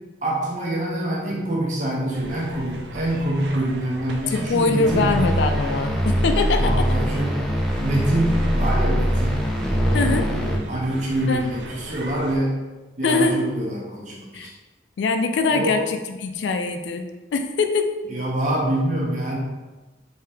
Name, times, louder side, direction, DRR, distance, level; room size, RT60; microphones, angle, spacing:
voice 1, 0.2-5.1 6.6-7.4 7.8-12.6 13.0-14.5 15.5-15.8 18.1-19.4, right 1 dB, 45° right, -3 dB, 0.7 m, -26 dB
sound 1, 2.1-12.4, right 1 dB, 75° right, 0.5 m, -38 dB
voice 2, 4.3-6.9 9.9-10.3 11.3-11.5 13.0-13.4 14.3-14.5 15.0-18.0, left 3 dB, 85° left, 7 dB, 0.3 m, -23 dB
sound 2, 4.8-10.6, equal, ahead, 0.3 m, -22 dB
3.3 x 2.7 x 3.3 m, 1.2 s
head